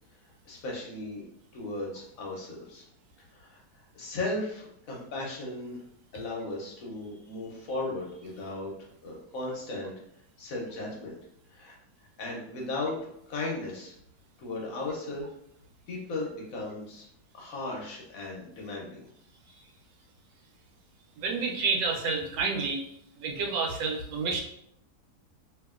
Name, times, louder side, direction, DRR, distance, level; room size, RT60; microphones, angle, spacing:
voice 1, 0.5-1.2 1.5-2.8 3.3-3.6 3.9-5.8 6.1-8.7 9.0-9.9 10.4-11.2 11.5-11.8 12.2-13.9 14.4-15.3 15.9-17.0 17.3-19.1, left 2 dB, 65° left, -2 dB, 1.0 m, -36 dB
voice 2, 21.2-22.8 23.2-24.4, right 4 dB, 90° right, 2 dB, 1.3 m, -29 dB
2.7 x 2.6 x 2.3 m, 0.73 s
omnidirectional pair, 1.9 m